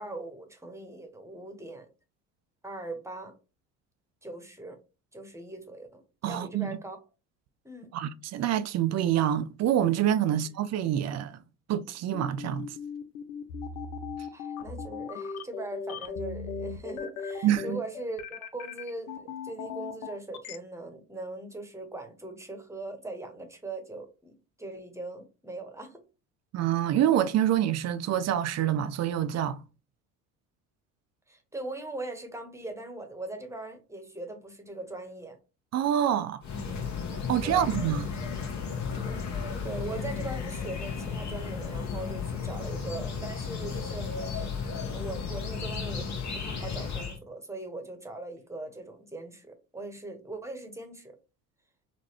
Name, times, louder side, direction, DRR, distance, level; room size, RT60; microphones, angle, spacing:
voice 1, 0.0-1.9 2.6-3.4 4.2-4.8 5.1-7.0 7.6-7.9 14.3-26.0 31.3-35.4 36.7-36.9 37.4-37.6 38.9-39.3 39.6-44.1 44.9-51.2, right 2 dB, 5° right, 1.0 m, -40 dB
voice 2, 6.2-6.8 7.9-11.4 11.7-12.8 17.4-17.8 26.5-29.6 35.7-36.4 37.3-38.2, right 11 dB, 40° right, 0.4 m, -26 dB
sound 1, 12.1-20.6, left 5 dB, 80° left, 0.6 m, -37 dB
sound 2, 36.4-47.2, left 5 dB, 45° left, 1.2 m, -34 dB
4.0 x 2.2 x 2.9 m
hypercardioid pair, 60°, 41 cm